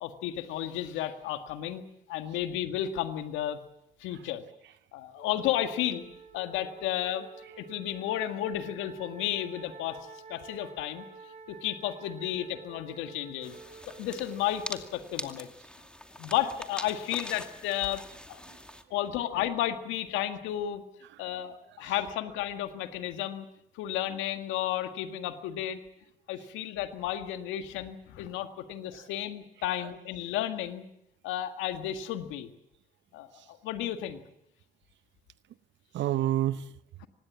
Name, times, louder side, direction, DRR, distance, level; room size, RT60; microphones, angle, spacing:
voice 1, 0.0-1.8 2.1-3.6 4.0-4.4 4.9-6.0 6.3-7.3 7.6-10.0 10.3-11.0 11.5-13.6 14.0-15.5 16.2-18.0 18.3-18.4 18.9-20.8 21.2-23.5 23.8-25.8 26.3-30.8 31.2-32.5 33.1-34.2, left 12 dB, 80° left, 1.8 m, -32 dB
Wind instrument woodwind instrument, 5.2-15.5, right 5 dB, 35° right, 5.6 m, -50 dB
sound 1, 13.4-18.8, equal, 5° left, 2.4 m, -43 dB
voice 2, 18.5-18.8 21.1-21.3 21.7-21.9 28.9-29.1 29.8-29.9 33.3-33.5 35.9-36.8, right 13 dB, 65° right, 0.9 m, -32 dB
25.0 x 19.5 x 7.2 m
hypercardioid pair, 50°, 20 cm